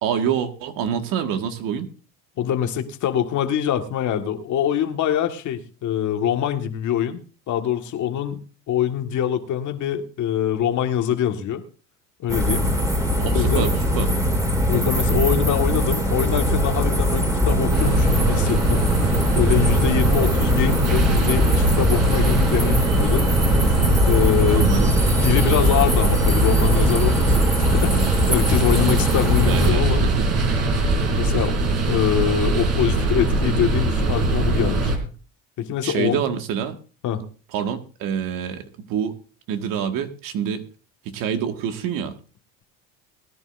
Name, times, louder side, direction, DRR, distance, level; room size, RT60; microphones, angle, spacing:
voice 1, 0.0-1.9 13.2-13.7 14.0-14.1 24.5-25.0 29.4-30.3 35.8-36.7 37.5-39.1 39.5-40.6 41.1-42.1, right 8 dB, 65° right, 6 dB, 1.9 m, -26 dB
voice 2, 2.4-7.2 7.5-11.6 12.2-12.7 13.2-13.8 14.7-18.8 19.3-23.3 24.0-24.8 25.2-30.1 31.1-31.6 31.9-34.9 35.6-36.2 37.0-37.2, left 9 dB, 55° left, 6 dB, 1.8 m, -24 dB
sound 1, 12.3-29.7, equal, 10° right, 2.9 m, -21 dB
sound 2, 17.7-35.0, right 3 dB, 45° right, 3.3 m, -22 dB
21.0 x 10.5 x 2.6 m, 0.36 s
supercardioid pair, 105°, 36 cm